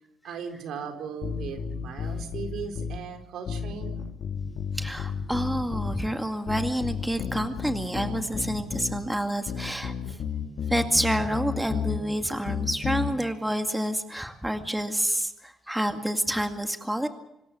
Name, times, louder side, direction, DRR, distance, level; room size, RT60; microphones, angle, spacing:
voice 1, 0.2-4.0, right 6 dB, 80° right, 5 dB, 4.3 m, -37 dB
sound 1, 1.2-3.0 3.5-6.1 6.5-9.0 9.5-12.0 12.5-13.1, left 7 dB, 65° left, 2.4 m, -32 dB
voice 2, 4.7-10.2 10.7-17.1, right 1 dB, 5° right, 6 dB, 2.2 m, -28 dB
25.5 x 13.5 x 9.0 m, 0.84 s
cardioid pair, 90°, 0 cm